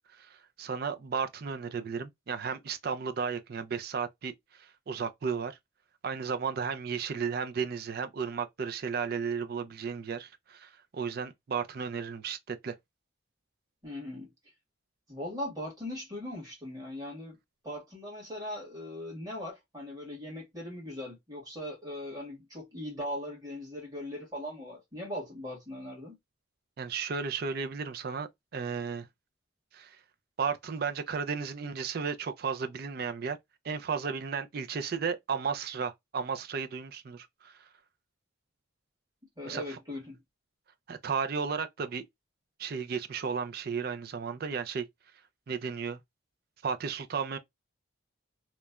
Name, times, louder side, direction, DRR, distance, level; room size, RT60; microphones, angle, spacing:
voice 1, 0.2-5.6 6.0-12.8 26.8-29.1 29.7-30.0 30.4-33.4 33.6-37.7 39.5-39.8 40.9-42.0 42.6-44.9 45.5-46.0 46.6-47.4, right 6 dB, 50° right, 0.4 m, -34 dB
voice 2, 13.8-14.3 15.1-17.4 17.6-26.2 39.4-40.2, left 1 dB, 20° right, 1.5 m, -39 dB
3.0 x 2.1 x 2.3 m
head